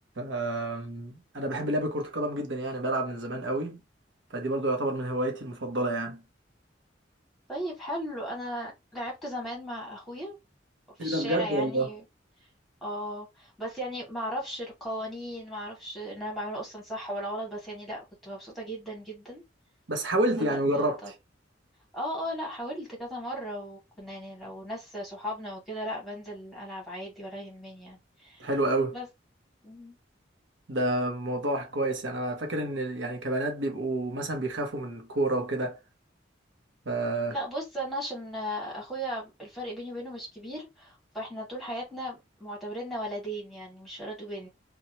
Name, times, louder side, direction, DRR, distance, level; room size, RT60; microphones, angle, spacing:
voice 1, 0.2-3.8 4.3-6.2 11.0-11.9 19.9-21.1 28.4-29.0 30.7-35.8 36.9-37.4, right 1 dB, 80° right, 0.9 m, -29 dB
voice 2, 7.5-10.3 11.0-12.0 12.8-19.4 20.3-21.1 21.9-28.5 28.9-29.1 29.6-29.9 37.3-44.5, equal, ahead, 1.4 m, -36 dB
2.9 x 2.3 x 2.8 m
head